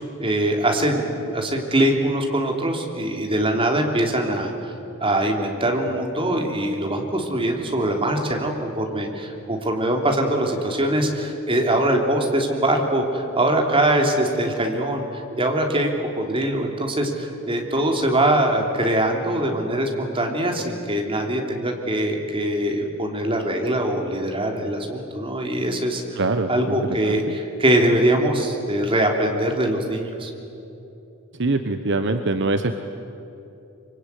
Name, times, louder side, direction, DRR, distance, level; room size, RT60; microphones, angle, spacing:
voice 1, 0.2-4.7 5.0-26.2 26.5-30.3, right 1 dB, 25° right, 2 dB, 3.2 m, -22 dB
voice 2, 26.2-26.8 27.0-27.2 31.4-32.8, right 2 dB, 60° right, 8 dB, 1.1 m, -23 dB
25.0 x 24.5 x 9.6 m, 2.9 s
head